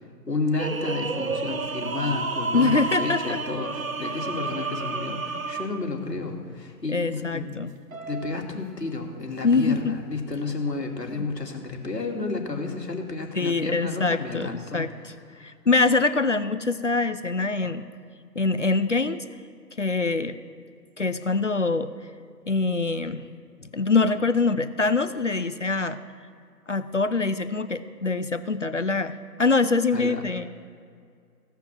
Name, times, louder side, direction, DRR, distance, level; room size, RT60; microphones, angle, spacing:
voice 1, 0.3-7.5 8.1-14.9 29.9-30.2, left 3 dB, 75° left, 2 dB, 2.6 m, -31 dB
sound 1, 0.6-5.9 7.9-8.4, right 3 dB, 55° right, 0.9 m, -31 dB
voice 2, 2.5-3.4 6.9-7.7 9.4-9.9 11.2-11.3 13.3-15.1 15.4-17.8 18.4-19.2 19.8-20.4 21.0-21.9 22.5-23.3 23.6-26.0 26.7-30.5, left 3 dB, 50° left, 12 dB, 0.6 m, -24 dB
16.5 x 5.9 x 7.3 m, 2.2 s
figure-of-eight pair, 165°, 49 cm